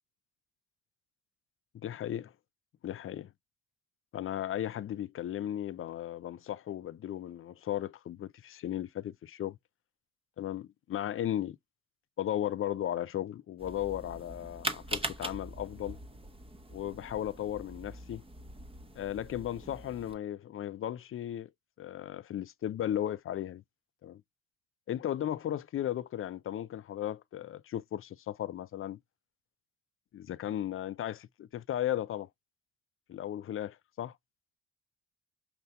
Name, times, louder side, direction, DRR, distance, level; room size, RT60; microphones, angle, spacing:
voice 1, 1.7-2.3 2.8-3.3 4.1-9.6 10.4-11.6 12.2-16.0 16.7-18.2 19.0-21.5 21.8-23.6 24.0-24.2 24.9-29.0 30.1-32.3 33.1-34.1, left 11 dB, 40° left, 0.4 m, -36 dB
sound 1, 13.6-20.1, right 2 dB, 15° right, 0.9 m, -42 dB
6.6 x 2.6 x 2.2 m
supercardioid pair, 65°, 35 cm